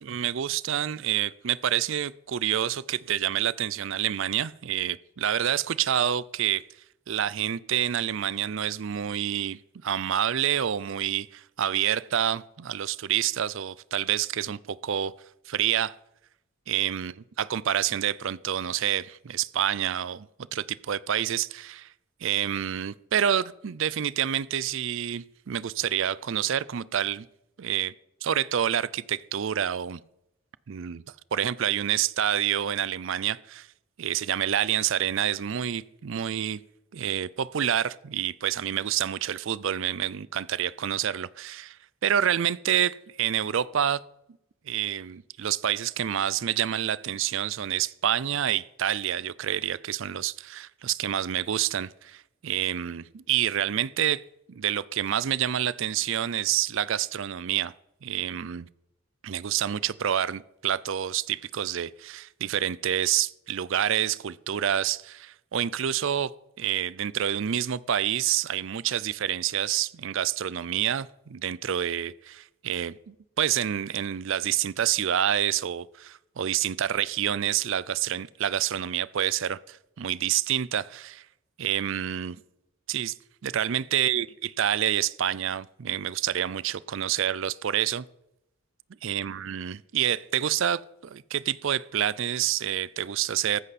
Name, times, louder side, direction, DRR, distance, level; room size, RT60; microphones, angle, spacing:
voice 1, 0.0-6.6 7.1-15.1 15.5-16.0 16.7-20.3 20.5-21.9 22.2-27.3 27.6-27.9 28.2-30.0 30.7-31.0 31.3-33.7 34.0-36.6 36.9-41.8 42.0-44.0 44.7-54.2 54.6-57.7 58.0-58.7 59.2-66.3 66.6-81.2 81.6-82.4 82.9-83.1 83.4-88.1 89.0-93.6, right 10 dB, 60° right, 0.4 m, -28 dB
14.5 x 13.5 x 4.2 m
head